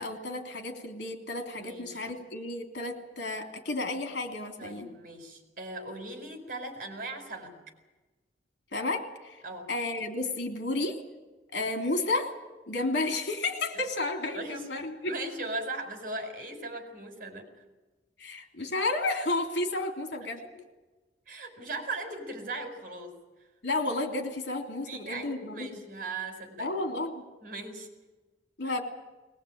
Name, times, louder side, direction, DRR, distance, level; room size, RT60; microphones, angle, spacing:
voice 1, 0.0-4.9 8.7-9.4 9.7-11.0 11.5-12.3 12.7-15.1 18.2-20.4 23.6-25.8 26.6-27.2 28.6-28.8, left 2 dB, 75° left, 4 dB, 3.2 m, -32 dB
voice 2, 1.6-2.0 4.6-7.6 9.4-9.7 14.3-17.5 21.3-23.1 24.9-26.7 27.4-27.9 28.6-28.7, right 2 dB, 50° right, 5 dB, 5.1 m, -38 dB
21.5 x 20.0 x 8.8 m, 1.2 s
head